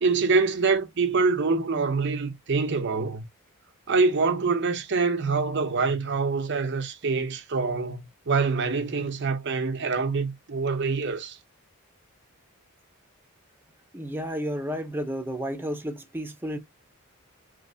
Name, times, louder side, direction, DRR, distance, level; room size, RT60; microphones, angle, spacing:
voice 1, 0.0-3.2 3.9-11.4, right 4 dB, 55° right, 0.7 m, -25 dB
voice 2, 13.9-16.6, equal, 10° right, 0.6 m, -32 dB
3.2 x 2.9 x 2.7 m
head